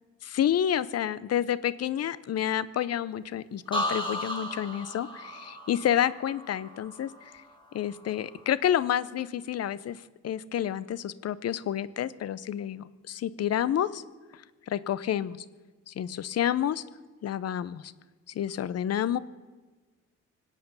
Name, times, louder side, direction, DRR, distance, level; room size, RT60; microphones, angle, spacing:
voice 1, 0.2-7.1 7.7-10.0 10.2-14.0 14.7-15.4 15.9-16.8 17.2-17.9 18.3-19.2, left 10 dB, 55° left, 18 dB, 0.7 m, -29 dB
sound 1, 3.7-7.5 7.9-8.4, equal, 15° left, 3.5 m, -35 dB
24.5 x 8.5 x 6.9 m, 1.3 s
cardioid pair, 90°, 30 cm